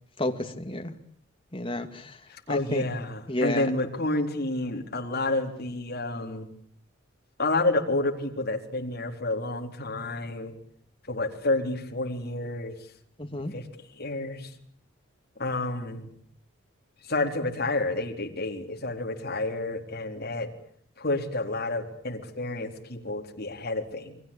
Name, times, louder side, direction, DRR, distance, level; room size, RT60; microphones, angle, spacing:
voice 1, 0.2-0.9 1.5-2.2 2.5-2.8 3.3-3.7 13.2-13.5, left 1 dB, 25° left, 5 dB, 2.4 m, -30 dB
voice 2, 2.5-6.5 7.4-10.5 11.1-12.7 13.5-13.7 13.9-14.5 15.4-16.1 17.0-20.5 21.0-24.2, left 2 dB, 50° left, 2 dB, 4.1 m, -29 dB
29.0 x 23.0 x 8.8 m, 0.63 s
head